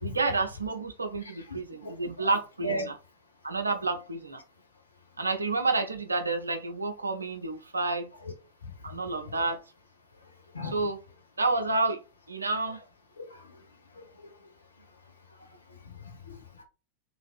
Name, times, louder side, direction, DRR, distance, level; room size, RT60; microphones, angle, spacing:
voice 1, 0.0-2.9 3.4-4.4 5.2-8.1 8.8-9.6 10.6-11.0 11.4-12.0 12.3-12.8, right 3 dB, 80° right, 0.6 m, -29 dB
voice 2, 1.5-2.3 2.6-2.9 8.2-8.3 8.6-8.7 9.0-9.1 10.5-10.9 13.2-13.6 14.0-14.1 15.9-16.6, equal, 75° left, 0.8 m, -37 dB
3.2 x 2.5 x 2.3 m
figure-of-eight pair, 90°, 0 cm